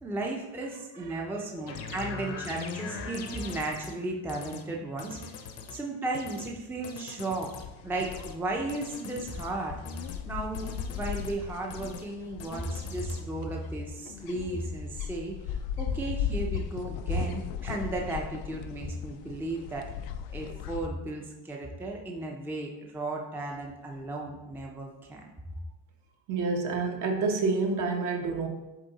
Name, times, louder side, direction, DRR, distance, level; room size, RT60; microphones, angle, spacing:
voice 1, 0.0-5.4 5.7-7.5 7.8-9.8 10.3-19.9 20.3-25.2, right 2 dB, 5° right, 0 dB, 0.6 m, -35 dB
sound 1, 1.7-4.0 4.3-4.6 5.0-5.8 6.1-6.5 6.8-7.7 8.0-8.4 8.7-9.5 9.9-10.2 10.5-11.4 11.7-12.1 12.4-13.2, left 5 dB, 45° left, 0.7 m, -41 dB
sound 2, 7.6-20.9, left 8 dB, 90° left, 0.5 m, -37 dB
voice 2, 26.3-28.5, right 4 dB, 55° right, 2 dB, 1.2 m, -28 dB
7.4 x 3.6 x 4.0 m, 1.0 s
cardioid pair, 140°, 36 cm